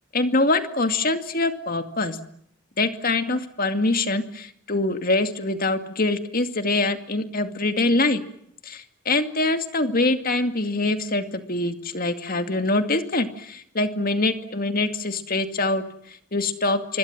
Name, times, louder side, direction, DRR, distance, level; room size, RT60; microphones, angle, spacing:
voice 1, 0.1-2.2 2.8-8.2 8.6-17.0, left 2 dB, 40° left, 8 dB, 2.3 m, -24 dB
27.0 x 24.5 x 7.4 m, 0.72 s
head